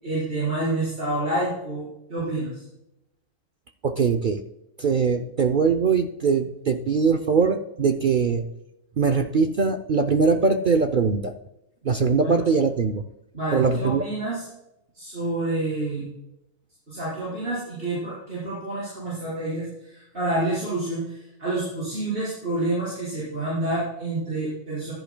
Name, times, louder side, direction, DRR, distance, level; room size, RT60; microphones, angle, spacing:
voice 1, 0.0-2.6 12.2-12.4 13.3-14.4 14.9-16.0 16.9-24.9, right 2 dB, 35° right, -8 dB, 4.7 m, -28 dB
voice 2, 3.8-4.4 4.8-8.5 9.0-11.3 11.8-13.0 13.5-14.0, right 5 dB, 60° right, 5 dB, 0.5 m, -21 dB
15.0 x 11.0 x 2.2 m, 0.86 s
omnidirectional pair, 1.6 m